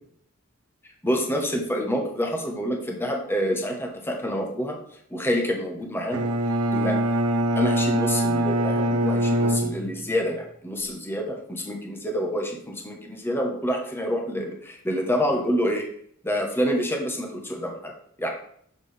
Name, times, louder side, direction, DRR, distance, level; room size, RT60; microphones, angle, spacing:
voice 1, 1.0-4.8 5.1-6.2 6.7-7.0 7.6-15.9 16.2-17.9 18.2-18.3, equal, 10° left, 1 dB, 1.0 m, -27 dB
Bowed string instrument, 6.1-10.3, right 1 dB, 85° right, 0.8 m, -24 dB
7.4 x 6.1 x 3.4 m, 0.66 s
head